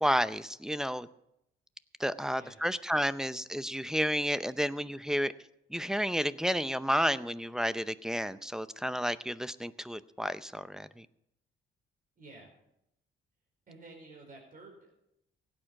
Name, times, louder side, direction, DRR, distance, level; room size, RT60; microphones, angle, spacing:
voice 1, 0.0-1.1 2.0-5.3 5.7-11.1, equal, 5° right, 14 dB, 0.6 m, -31 dB
voice 2, 12.2-12.5 13.7-14.9, right 2 dB, 45° right, -1 dB, 4.9 m, -51 dB
16.5 x 9.0 x 6.0 m, 0.81 s
cardioid pair, 90°, 20 cm